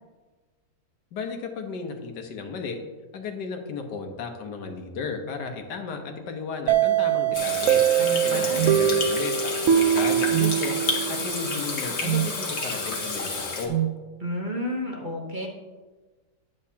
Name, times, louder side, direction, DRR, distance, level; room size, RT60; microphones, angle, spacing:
voice 1, 1.1-2.8 3.1-7.8 8.2-10.8 11.1-13.7, left 5 dB, 85° left, 4 dB, 1.6 m, -34 dB
sound 1, 6.7-11.4, right 10 dB, 65° right, 0.9 m, -23 dB
Water tap faucet / Sink (filling or washing), 7.3-13.7, left 3 dB, 45° left, 1.3 m, -30 dB
voice 2, 7.9-8.6 14.2-15.5, equal, 35° right, -1 dB, 0.9 m, -31 dB
sound 2, 8.6-8.8 10.3-10.6 12.0-12.3 13.7-14.0, right 14 dB, 80° right, 1.2 m, -25 dB
10.0 x 8.3 x 2.8 m, 1.3 s
omnidirectional pair, 1.8 m